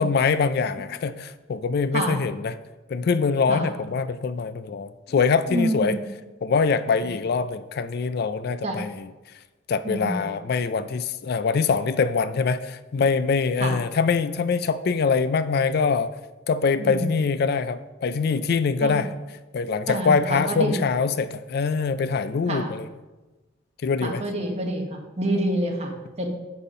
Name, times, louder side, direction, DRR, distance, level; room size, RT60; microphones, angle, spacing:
voice 1, 0.0-2.6 2.9-6.0 6.4-9.1 9.7-16.1 16.5-19.1 19.5-22.9 23.8-24.2, left 5 dB, 50° left, 13 dB, 0.3 m, -24 dB
voice 2, 5.5-6.0 8.6-8.8 9.8-10.2 13.6-13.8 16.8-17.1 18.8-19.0 19.9-20.8 22.5-22.8 24.0-26.3, right 1 dB, 30° right, 2 dB, 1.2 m, -27 dB
10.5 x 4.2 x 5.1 m, 1.1 s
head